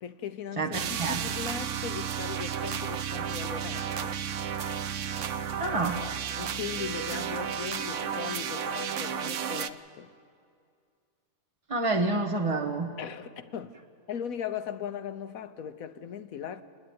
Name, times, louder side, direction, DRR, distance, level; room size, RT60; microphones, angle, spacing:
voice 1, 0.0-0.8 1.1-4.2 6.4-10.1 13.0-13.7 14.1-16.6, left 8 dB, 70° left, 1.3 m, -38 dB
voice 2, 0.6-1.2 5.6-6.0 11.7-12.9, right 3 dB, 25° right, 1.0 m, -28 dB
sound 1, 0.7-9.7, right 8 dB, 65° right, 1.0 m, -33 dB
28.5 x 10.5 x 9.4 m
omnidirectional pair, 1.5 m